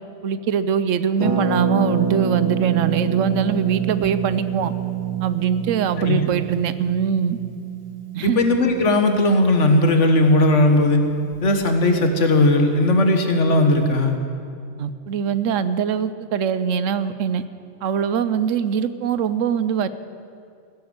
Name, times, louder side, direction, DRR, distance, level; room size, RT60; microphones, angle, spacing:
voice 1, 0.2-4.7 5.2-7.4 8.1-8.4 14.8-17.4 17.8-19.9, right 7 dB, 85° right, 14 dB, 1.0 m, -23 dB
Harp, 1.2-10.8 11.1-11.2 11.3-11.7, right 8 dB, 25° right, 1.8 m, -26 dB
voice 2, 8.2-11.0 11.4-14.2, left 2 dB, 70° left, 5 dB, 1.7 m, -17 dB
16.0 x 10.5 x 7.9 m, 2.4 s
omnidirectional pair, 1.3 m